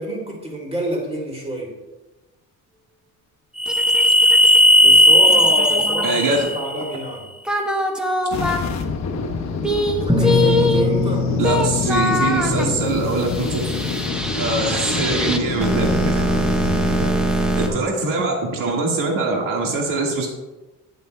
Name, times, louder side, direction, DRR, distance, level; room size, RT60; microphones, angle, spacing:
voice 1, 0.0-1.7 4.8-7.3 10.0-11.3 16.1-16.5 16.7-17.9, right 1 dB, 20° right, -1 dB, 2.6 m, -28 dB
sound 1, 3.6-6.9 7.5-8.6 9.6-17.7, left 1 dB, 5° right, 0.9 m, -18 dB
voice 2, 6.0-6.5 11.4-13.6 14.4-16.3 17.6-20.3, right 3 dB, 75° right, 0 dB, 1.7 m, -23 dB
sound 2, 8.3-17.1, left 4 dB, 55° left, 1.0 m, -27 dB
11.0 x 9.7 x 2.2 m, 1.1 s
cardioid pair, 120°, 32 cm